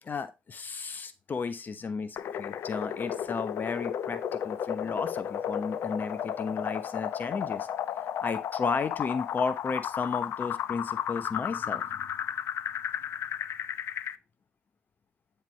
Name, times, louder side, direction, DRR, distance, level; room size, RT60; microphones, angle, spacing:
voice 1, 0.0-7.7 8.2-12.1, left 5 dB, 40° left, 1.0 m, -33 dB
sound 1, 2.2-14.2, left 9 dB, 60° left, 0.6 m, -33 dB
9.4 x 3.5 x 4.5 m
hypercardioid pair, 55°, 5 cm